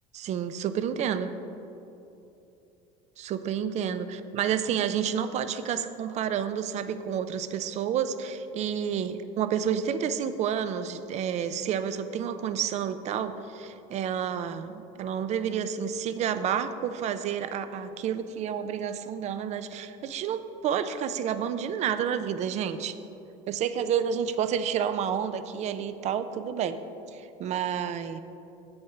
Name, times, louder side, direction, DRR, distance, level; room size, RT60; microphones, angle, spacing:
voice 1, 0.1-1.3 3.2-22.9 23.5-26.8 27.1-28.2, right 8 dB, 40° right, 11 dB, 0.6 m, -30 dB
8.7 x 7.8 x 5.9 m, 2.9 s
supercardioid pair, 120°, 17 cm